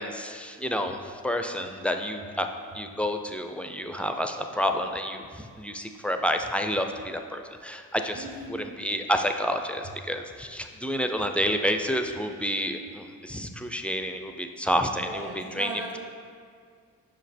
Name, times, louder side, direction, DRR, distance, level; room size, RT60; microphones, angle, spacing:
voice 1, 0.0-2.5 2.7-8.2 8.6-15.7, equal, 5° left, 5 dB, 0.4 m, -29 dB
voice 2, 8.1-8.8 14.9-16.0, right 1 dB, 40° right, -1 dB, 0.9 m, -38 dB
5.7 x 5.1 x 4.2 m, 2.1 s
cardioid pair, 70°, 36 cm